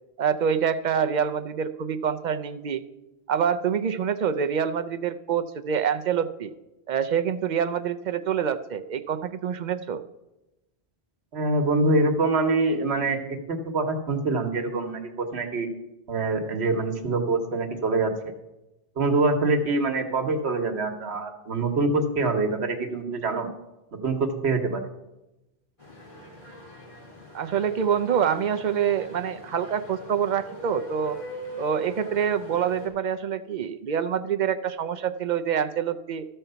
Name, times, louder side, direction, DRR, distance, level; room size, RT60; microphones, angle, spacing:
voice 1, 0.2-2.8 3.3-6.5 6.9-10.0 27.3-31.2 31.6-36.3, right 8 dB, 55° right, 11 dB, 0.6 m, -26 dB
voice 2, 11.3-15.7 16.1-18.1 19.0-23.5 24.0-24.8, right 3 dB, 85° right, 5 dB, 1.3 m, -25 dB
sound 1, 25.8-32.9, left 1 dB, 30° left, 2.4 m, -42 dB
13.0 x 4.5 x 6.7 m, 0.98 s
omnidirectional pair, 1.1 m